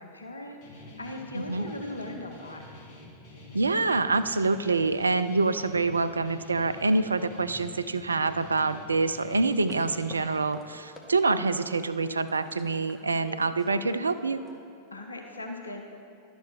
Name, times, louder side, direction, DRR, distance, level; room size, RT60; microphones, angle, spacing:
voice 1, 0.0-2.6 14.9-15.8, left 2 dB, 80° left, 3 dB, 0.8 m, -39 dB
Guitar, 0.6-10.4, left 2 dB, 50° left, 1.8 m, -48 dB
voice 2, 1.3-1.7 3.5-14.4, right 3 dB, 75° right, 12 dB, 0.3 m, -26 dB
sound 1, 9.3-11.1 11.5-14.5, left 2 dB, 20° left, 1.4 m, -50 dB
11.5 x 7.0 x 4.3 m, 2.5 s
figure-of-eight pair, 90°, 0 cm